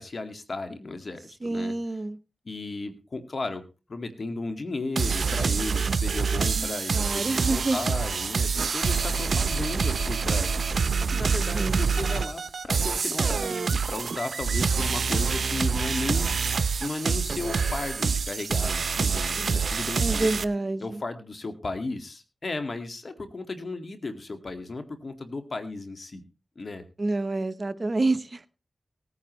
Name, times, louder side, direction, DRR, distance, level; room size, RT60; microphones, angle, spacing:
voice 1, 0.0-1.7 2.5-3.6 3.9-16.5 16.8-20.3 20.8-26.2 26.6-26.8, left 3 dB, 65° left, 8 dB, 2.0 m, -35 dB
voice 2, 1.4-2.2 6.5-7.8 11.5-11.8 20.0-21.0 27.0-28.5, right 2 dB, 50° right, 12 dB, 0.9 m, -28 dB
sound 1, 5.0-20.4, right 5 dB, 80° right, 0.6 m, -26 dB
18.0 x 9.7 x 3.2 m, 0.31 s
cardioid pair, 45°, 0 cm